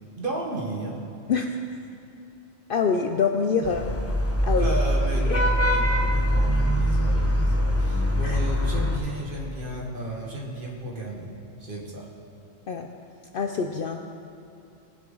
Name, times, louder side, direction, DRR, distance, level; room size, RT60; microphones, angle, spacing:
voice 1, 0.2-1.0 3.6-3.8 4.5-11.3 11.6-12.1, right 1 dB, 45° right, -2 dB, 1.7 m, -33 dB
voice 2, 2.7-3.9 4.4-4.7 5.2-5.4 8.2-8.4 12.7-12.9 13.3-14.0, left 5 dB, 60° left, 5 dB, 0.6 m, -25 dB
Vehicle horn car horn honking / Traffic noise roadway noise, 3.6-9.0, equal, 15° left, 0.7 m, -23 dB
18.5 x 6.8 x 3.9 m, 2.7 s
omnidirectional pair, 1.3 m